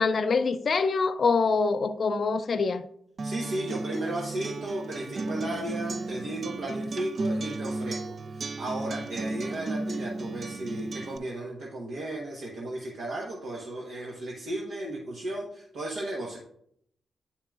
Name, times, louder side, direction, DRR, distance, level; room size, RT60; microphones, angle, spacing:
voice 1, 0.0-2.8, left 4 dB, 60° left, 0.4 m, -25 dB
Acoustic guitar, 3.2-11.2, right 2 dB, 55° right, 0.3 m, -34 dB
voice 2, 3.2-8.0 8.3-16.4, right 1 dB, 75° right, 1.0 m, -34 dB
8.7 x 5.7 x 2.4 m
supercardioid pair, 45°, 0 cm